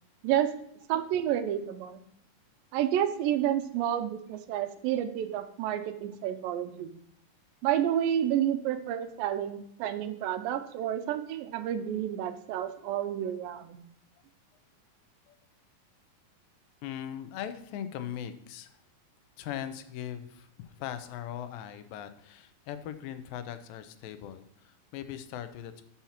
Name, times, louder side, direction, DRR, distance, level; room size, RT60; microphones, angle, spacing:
voice 1, 0.9-2.0 2.7-6.9 7.6-13.8, right 11 dB, 85° right, 10 dB, 2.3 m, -30 dB
voice 2, 16.8-18.8 19.4-25.8, left 10 dB, 85° left, 10 dB, 2.4 m, -40 dB
12.5 x 5.6 x 2.9 m, 0.72 s
omnidirectional pair, 4.0 m